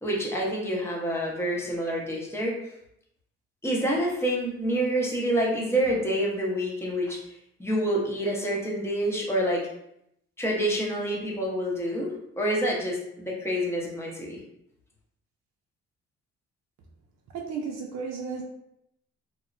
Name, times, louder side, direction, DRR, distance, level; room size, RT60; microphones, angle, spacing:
voice 1, 0.0-2.6 3.6-7.2 7.6-9.6 10.4-14.4, right 1 dB, 10° left, -3 dB, 0.8 m, -27 dB
voice 2, 17.3-18.4, right 5 dB, 65° right, -1 dB, 0.5 m, -33 dB
2.9 x 2.1 x 2.5 m, 0.76 s
cardioid pair, 90°, 30 cm